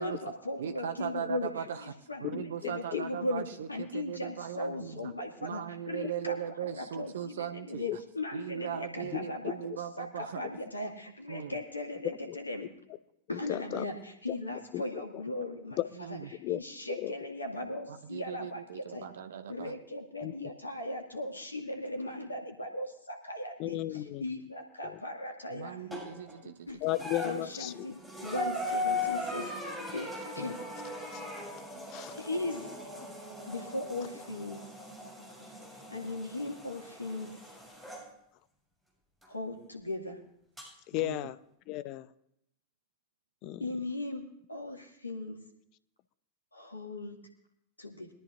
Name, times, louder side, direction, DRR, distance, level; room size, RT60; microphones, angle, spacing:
voice 1, 0.0-1.5 1.8-6.4 6.6-9.6 10.0-12.7 13.3-15.8 16.5-19.1 19.5-23.8 24.2-25.9 26.7-26.8 27.2-29.5 29.9-30.1 30.4-30.6 32.1-32.7 33.5-34.6 35.9-37.3 39.3-40.2 43.6-45.4 46.5-47.2 47.8-48.1, left 2 dB, 80° left, 4 dB, 2.0 m, -38 dB
voice 2, 0.6-1.9 2.2-5.1 5.4-8.0 8.3-10.4 11.3-11.6 16.0-16.2 17.9-19.7 25.5-26.7 41.0-41.2, right 9 dB, 60° right, 10 dB, 0.6 m, -38 dB
voice 3, 2.2-3.0 7.9-8.0 9.0-9.3 10.4-10.5 12.2-12.4 13.3-13.8 14.7-15.2 15.8-15.9 16.4-16.6 16.9-17.2 20.2-20.5 23.6-24.2 24.8-25.0 26.4-26.5 26.8-27.9 30.4-30.5 31.1-31.2 31.9-32.1 40.9-41.4 41.7-42.1 43.4-43.7, left 16 dB, 40° left, 15 dB, 0.7 m, -35 dB
sound 1, 25.9-26.4 26.9-38.1 39.2-39.3 40.6-40.7, left 2 dB, 5° right, 6.5 m, -39 dB
22.0 x 13.5 x 2.6 m, 0.76 s
figure-of-eight pair, 90°, 0 cm